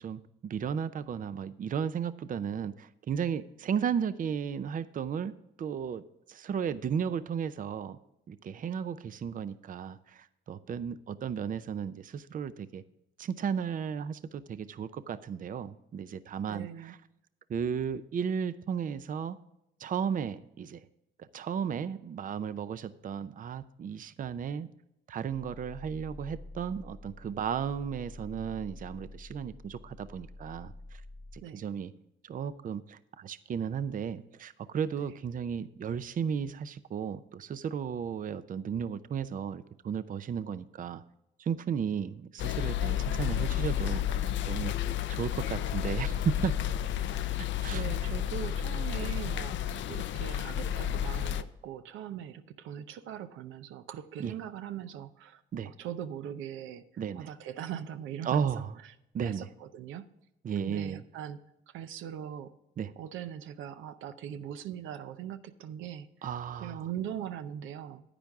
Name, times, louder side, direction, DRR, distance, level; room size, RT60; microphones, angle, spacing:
voice 1, 0.0-5.3 5.6-6.0 6.3-8.0 8.3-12.8 13.2-17.0 17.5-19.4 19.8-20.8 21.2-24.7 25.1-31.0 31.3-31.9 32.2-41.0 41.4-44.1 44.4-44.7 45.1-46.5 47.4-48.1 54.2-54.3 55.5-55.7 57.0-57.3 58.2-58.8 59.1-59.5 60.4-61.0 62.8-62.9 66.2-66.9, right 7 dB, 45° right, 14 dB, 0.5 m, -34 dB
voice 2, 16.5-17.0 31.4-31.6 35.0-35.1 47.7-49.6 49.9-56.8 57.2-58.6 59.2-60.1 60.6-61.4 61.7-62.5 63.0-66.1 66.6-68.0, right 10 dB, 90° right, 11 dB, 0.6 m, -40 dB
sound 1, 25.3-31.4, left 2 dB, 15° left, 0.8 m, -48 dB
sound 2, 42.4-51.4, left 10 dB, 70° left, 0.5 m, -31 dB
10.0 x 9.1 x 3.6 m, 0.84 s
cardioid pair, 90°, 20 cm